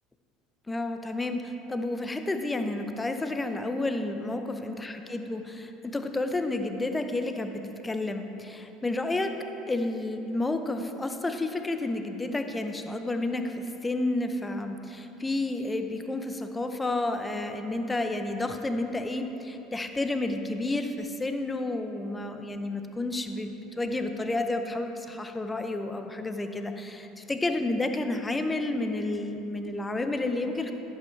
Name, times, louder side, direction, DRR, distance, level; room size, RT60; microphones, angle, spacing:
voice 1, 0.7-9.4 9.7-30.7, left 2 dB, 15° left, 7 dB, 0.7 m, -31 dB
11.0 x 7.8 x 3.3 m, 2.9 s
figure-of-eight pair, 70°, 0 cm